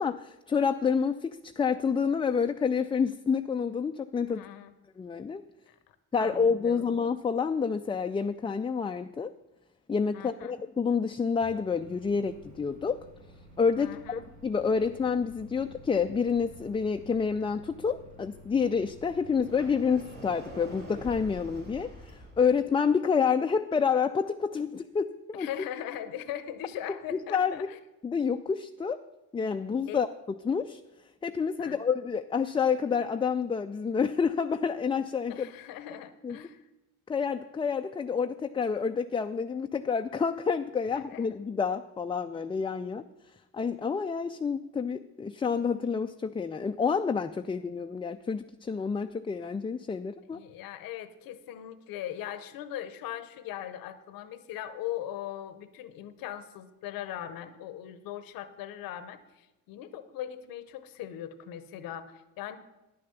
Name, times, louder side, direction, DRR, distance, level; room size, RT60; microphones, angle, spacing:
voice 1, 0.0-4.4 5.0-5.4 6.1-9.3 9.9-13.1 13.6-25.5 27.1-27.6 28.0-29.0 29.3-30.1 30.4-30.8 31.2-35.5 36.2-36.4 37.1-43.0 43.5-50.4, left 6 dB, 15° left, 7 dB, 0.3 m, -28 dB
voice 2, 4.3-4.7 5.7-6.9 10.1-10.6 13.8-14.3 25.4-27.8 29.9-30.0 31.6-31.8 35.3-36.7 40.8-41.2 50.3-62.6, left 11 dB, 85° left, 13 dB, 0.8 m, -40 dB
Microwave oven, 11.4-21.7, right 1 dB, 60° right, 1.5 m, -52 dB
Sliding door, 19.4-22.4, right 1 dB, 90° right, 3.8 m, -45 dB
10.5 x 6.6 x 6.9 m, 1.0 s
supercardioid pair, 70°, 34 cm